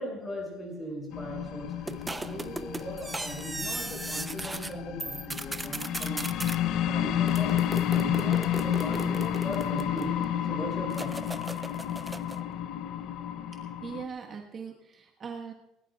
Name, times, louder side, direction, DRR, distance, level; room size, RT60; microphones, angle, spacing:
voice 1, 0.0-10.1 10.4-11.1, equal, 10° left, 0 dB, 6.4 m, -39 dB
sound 1, 1.1-14.1, left 10 dB, 50° left, 0.7 m, -31 dB
sound 2, 1.9-4.7 5.0-6.6 7.3-10.2 10.9-12.4, right 2 dB, 10° right, 0.5 m, -37 dB
voice 2, 13.8-15.5, right 6 dB, 30° right, 2 dB, 1.3 m, -40 dB
20.5 x 19.0 x 2.4 m, 0.96 s
cardioid pair, 165°, 0 cm